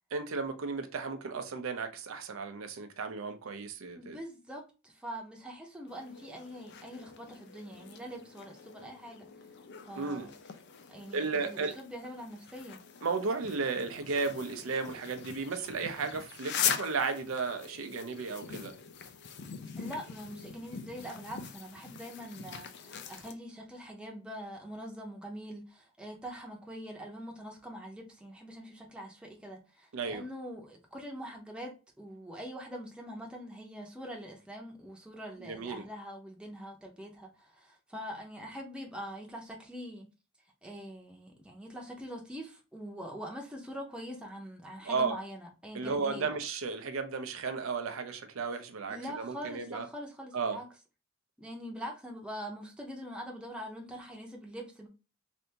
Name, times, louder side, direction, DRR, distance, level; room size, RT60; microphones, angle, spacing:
voice 1, 0.1-4.2 10.0-10.3 11.1-11.8 13.0-18.8 29.9-30.2 35.4-35.8 44.8-45.1 45.7-49.9 50.3-50.6, right 4 dB, 80° right, 0.5 m, -34 dB
voice 2, 3.9-9.3 9.9-10.3 10.9-12.8 19.8-40.1 40.6-46.4 48.9-50.7 51.4-54.9, equal, 5° right, 0.7 m, -43 dB
sound 1, 5.9-23.3, left 7 dB, 55° left, 0.4 m, -42 dB
3.4 x 2.6 x 2.8 m
head